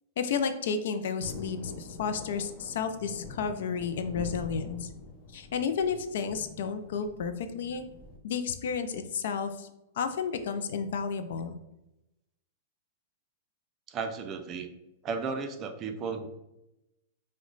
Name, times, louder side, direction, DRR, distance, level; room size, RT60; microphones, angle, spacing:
voice 1, 0.2-4.9 5.3-7.9 8.2-9.7 10.0-11.5, left 6 dB, 70° left, 9 dB, 0.4 m, -32 dB
Thunder, 1.2-8.2, left 3 dB, 35° left, 0.7 m, -44 dB
voice 2, 13.9-14.7 15.0-16.3, right 5 dB, 30° right, 7 dB, 0.4 m, -34 dB
3.0 x 2.1 x 3.8 m, 0.90 s
hypercardioid pair, 140°, 0 cm